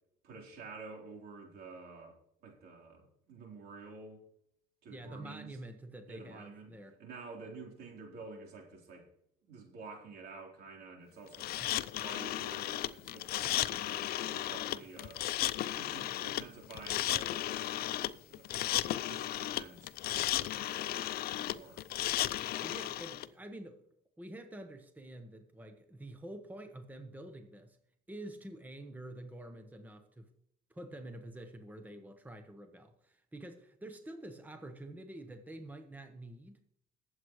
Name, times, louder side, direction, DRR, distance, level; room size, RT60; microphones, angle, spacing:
voice 1, 0.2-4.2 4.8-5.6 6.1-6.7 7.0-9.1 9.5-15.2 15.5-17.8 18.3-18.5 19.1-21.8, right 4 dB, 70° right, 1 dB, 3.7 m, -50 dB
voice 2, 4.9-7.0 11.6-11.8 22.6-23.8 24.2-27.8 28.1-30.3 30.7-36.6, right 1 dB, 10° right, 6 dB, 1.1 m, -48 dB
sound 1, 11.3-23.3, left 14 dB, 65° left, 0.5 m, -34 dB
21.0 x 7.9 x 3.2 m, 0.70 s
cardioid pair, 110°, 17 cm